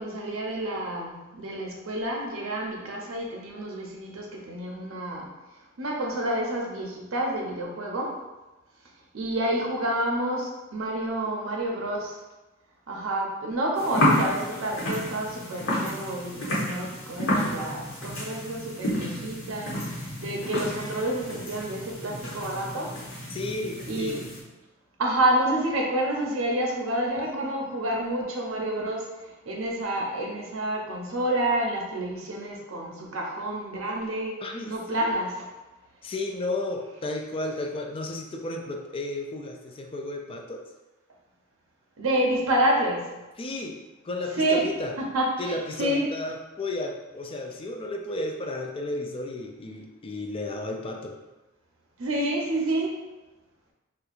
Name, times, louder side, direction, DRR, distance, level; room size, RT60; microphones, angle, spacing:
voice 1, 0.0-5.3 5.8-8.2 9.1-12.2 12.9-23.0 23.9-24.2 25.0-29.1 29.5-34.4 34.6-35.5 42.0-43.1 44.4-44.7 45.0-46.1 52.0-53.0, right 1 dB, 80° right, -1 dB, 0.7 m, -29 dB
sound 1, 13.8-24.4, equal, 80° left, 1.1 m, -30 dB
voice 2, 23.3-24.2 34.4-35.1 36.0-40.6 43.4-43.8 44.0-44.9 45.4-51.1, left 2 dB, 25° left, 3 dB, 0.3 m, -33 dB
4.3 x 2.3 x 2.5 m, 1.1 s
head